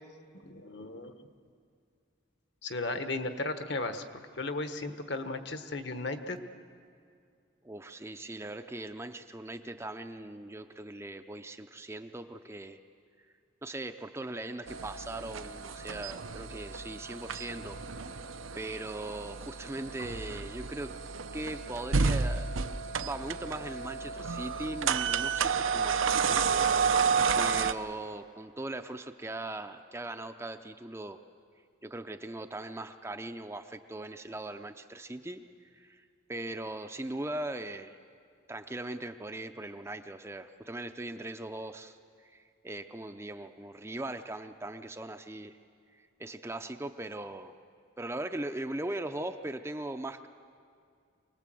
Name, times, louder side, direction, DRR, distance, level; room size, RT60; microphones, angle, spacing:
voice 1, 0.4-1.1 2.6-6.4, left 2 dB, 55° left, 8 dB, 1.2 m, -35 dB
voice 2, 7.6-12.8 13.6-18.3 18.6-20.9 21.3-22.5 23.0-26.4 27.4-31.2 31.8-38.0 38.5-45.6 46.0-47.5 48.0-50.3, right 1 dB, 15° right, 8 dB, 0.5 m, -40 dB
sound 1, 14.7-27.7, right 5 dB, 80° right, 0.7 m, -31 dB
24.5 x 19.5 x 7.7 m, 2.3 s
head